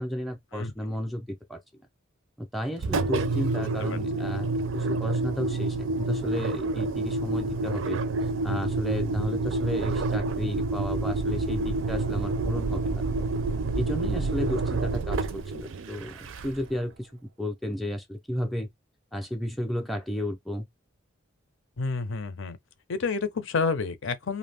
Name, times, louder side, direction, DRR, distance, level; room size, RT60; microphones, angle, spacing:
voice 1, 0.0-1.6 2.4-4.5 4.7-8.0 8.4-13.3 13.7-15.2 15.5-17.1 17.4-18.7 19.1-20.7, equal, ahead, 0.5 m, -33 dB
Engine, 2.8-16.8, right 3 dB, 70° right, 0.5 m, -28 dB
voice 2, 21.8-22.6 22.9-24.4, left 4 dB, 65° left, 0.6 m, -29 dB
2.6 x 2.2 x 3.3 m
head